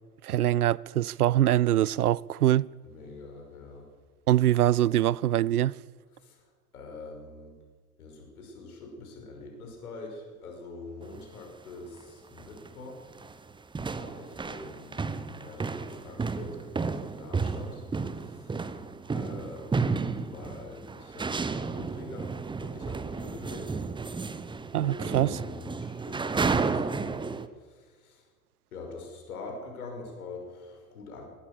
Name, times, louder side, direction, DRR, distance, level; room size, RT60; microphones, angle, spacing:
voice 1, 0.2-2.7 4.3-5.7 24.7-25.4, right 13 dB, 75° right, 0.6 m, -23 dB
voice 2, 2.8-3.9 6.1-7.5 8.0-13.2 13.9-17.9 18.1-18.8 19.1-24.5 24.8-28.3 28.7-31.3, left 3 dB, 70° left, 6.0 m, -45 dB
sound 1, 11.0-11.2 12.0-12.1 12.4-12.7 13.0-27.5, right 4 dB, 10° right, 0.9 m, -32 dB
21.5 x 17.5 x 7.0 m
figure-of-eight pair, 75°, 46 cm